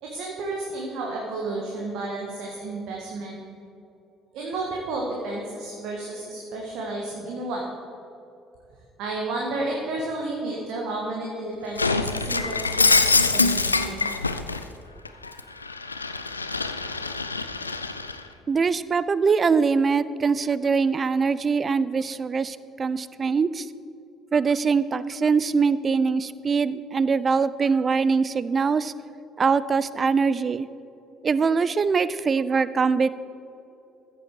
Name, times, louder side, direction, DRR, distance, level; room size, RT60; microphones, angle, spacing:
voice 1, 0.0-3.4 4.3-7.7 9.0-14.1, right 2 dB, 60° right, -2 dB, 1.4 m, -32 dB
Shatter, 11.8-14.6 15.1-18.2, left 3 dB, 85° left, 0.3 m, -24 dB
voice 2, 18.5-23.7 24.3-28.9 29.4-30.7 31.2-33.1, right 5 dB, 35° right, 17 dB, 0.4 m, -23 dB
14.5 x 6.8 x 4.6 m, 2.7 s
figure-of-eight pair, 50°, 0 cm